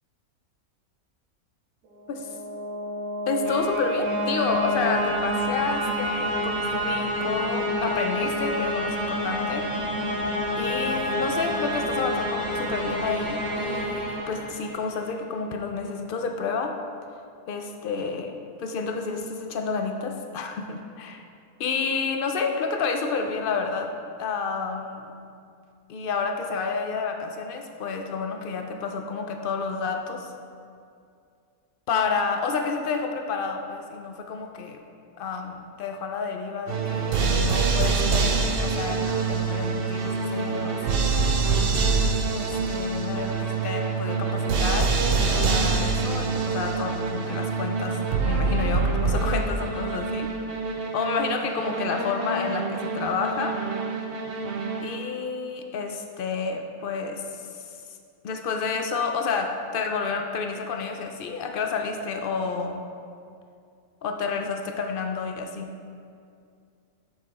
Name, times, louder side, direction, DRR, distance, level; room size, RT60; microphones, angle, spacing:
sound 1, 2.0-15.0, equal, 85° right, 1.6 m, -28 dB
voice 1, 3.3-9.7 10.5-16.7 17.5-21.2 21.6-23.9 24.2-25.1 25.9-30.3 31.9-34.8 35.2-41.2 42.3-50.3 50.9-53.6 54.8-57.6 58.2-62.8 64.0-65.7, left 5 dB, 80° left, 4 dB, 0.4 m, -30 dB
sound 2, 36.7-55.2, right 4 dB, 55° right, 0.6 m, -25 dB
7.7 x 6.5 x 4.1 m, 2.4 s
omnidirectional pair, 1.5 m